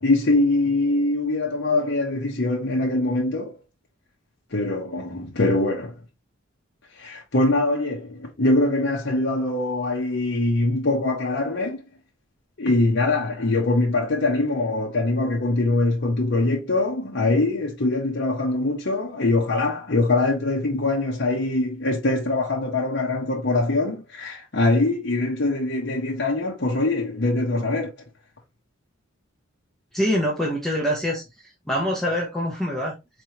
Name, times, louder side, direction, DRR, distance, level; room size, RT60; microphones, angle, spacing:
voice 1, 0.0-3.5 4.5-5.9 7.0-11.8 12.6-27.9, left 2 dB, 60° left, 1.0 m, -23 dB
voice 2, 29.9-31.2 31.7-32.9, equal, ahead, 1.0 m, -24 dB
4.3 x 3.2 x 2.9 m
head